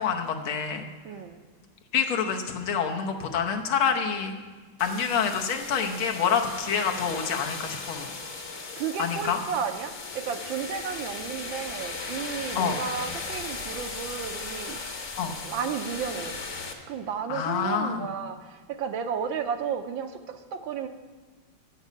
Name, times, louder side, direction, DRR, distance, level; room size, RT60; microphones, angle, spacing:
voice 1, 0.0-0.9 1.9-4.4 4.8-8.1 9.0-9.4 12.6-12.8 15.2-15.3 17.3-18.1, left 7 dB, 75° left, 3 dB, 1.8 m, -27 dB
voice 2, 1.0-1.4 8.7-14.8 15.4-16.4 16.9-20.9, right 7 dB, 75° right, 7 dB, 1.4 m, -33 dB
sound 1, 4.8-16.7, left 4 dB, 40° left, 1.2 m, -37 dB
13.5 x 5.5 x 8.3 m, 1.4 s
omnidirectional pair, 2.3 m